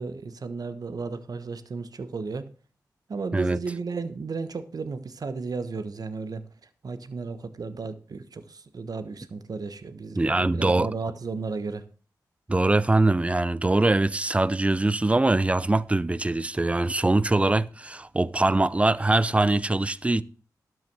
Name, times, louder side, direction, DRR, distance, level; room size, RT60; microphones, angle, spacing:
voice 1, 0.0-2.5 3.1-6.4 6.8-11.9, right 4 dB, 60° right, 1.2 m, -34 dB
voice 2, 10.2-10.9 12.5-20.2, right 2 dB, 15° right, 0.5 m, -23 dB
12.0 x 6.3 x 6.1 m
cardioid pair, 60°, 7 cm